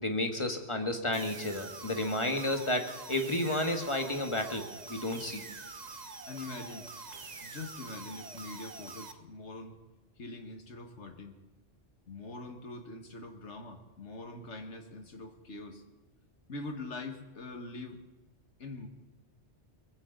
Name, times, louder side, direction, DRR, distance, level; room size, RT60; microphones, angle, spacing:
voice 1, 0.0-5.4, left 1 dB, 25° left, 5 dB, 1.7 m, -32 dB
sound 1, 1.1-9.1, right 4 dB, 40° right, 1.0 m, -45 dB
voice 2, 6.3-6.9 7.4-9.8 10.2-11.4 12.1-15.8 16.5-18.0 18.6-18.9, left 2 dB, 75° left, 5 dB, 2.1 m, -43 dB
21.5 x 16.0 x 4.0 m, 1.1 s
omnidirectional pair, 1.2 m